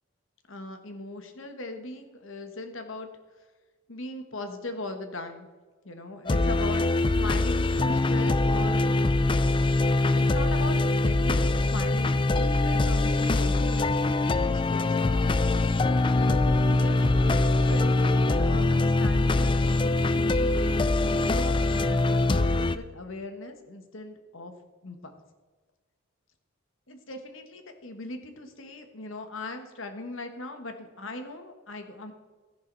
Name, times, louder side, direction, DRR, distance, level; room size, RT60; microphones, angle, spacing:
voice 1, 0.5-3.1 3.9-5.5 5.8-8.8 10.1-15.3 16.1-24.5 24.8-25.1 26.9-32.1, left 2 dB, 65° left, 6 dB, 1.4 m, -39 dB
sound 1, 6.3-22.8, left 2 dB, 20° left, 0.3 m, -23 dB
13.5 x 11.0 x 4.0 m, 1.4 s
head